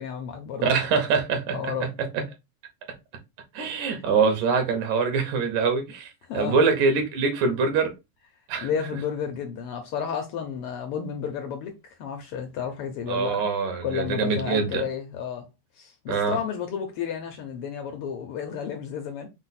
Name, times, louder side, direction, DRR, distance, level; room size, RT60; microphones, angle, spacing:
voice 1, 0.0-0.8 1.5-1.9 3.7-3.9 6.3-6.6 8.6-13.4 13.8-15.5 15.8-19.3, left 7 dB, 75° left, 1.3 m, -32 dB
voice 2, 0.6-1.9 2.1-2.2 3.5-7.9 8.5-8.7 13.1-14.8 16.1-16.4, right 5 dB, 90° right, 2.6 m, -24 dB
5.5 x 2.1 x 4.0 m
omnidirectional pair, 3.3 m